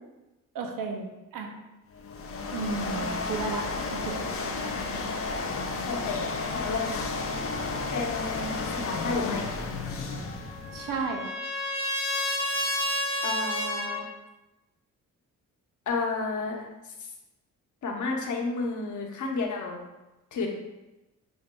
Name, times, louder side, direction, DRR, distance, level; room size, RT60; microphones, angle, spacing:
voice 1, 0.5-1.5 2.5-4.2 10.7-11.3, right 4 dB, 90° right, 4 dB, 0.5 m, -33 dB
sound 1, 1.9-11.1, left 3 dB, 45° left, 0.5 m, -32 dB
voice 2, 5.8-6.2 6.5-7.1 7.9-9.5 13.2-14.0 15.9-17.1 17.8-19.8 20.3-20.5, left 3 dB, 65° left, 0 dB, 0.9 m, -31 dB
Trumpet, 10.1-14.0, left 1 dB, 15° left, 0.9 m, -30 dB
6.2 x 2.6 x 2.2 m, 1.0 s
cardioid pair, 80°, 32 cm